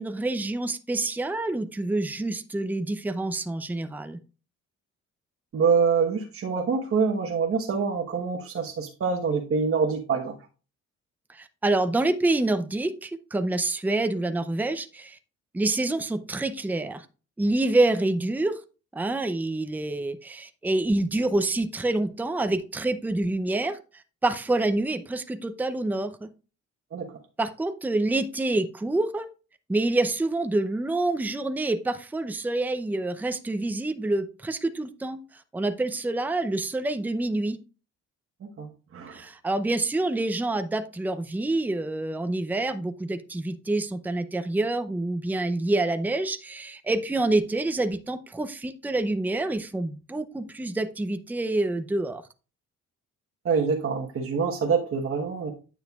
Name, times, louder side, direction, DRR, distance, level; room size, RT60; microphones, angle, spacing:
voice 1, 0.0-4.2 11.3-15.2 15.5-17.1 17.4-18.6 18.9-26.3 27.4-29.3 29.7-37.6 39.1-52.2, right 2 dB, 5° right, 10 dB, 0.6 m, -27 dB
voice 2, 5.5-10.3 26.9-27.1 38.6-39.2 53.4-55.5, right 5 dB, 45° right, 1 dB, 1.2 m, -25 dB
9.3 x 6.3 x 2.4 m, 0.34 s
cardioid pair, 90°, 30 cm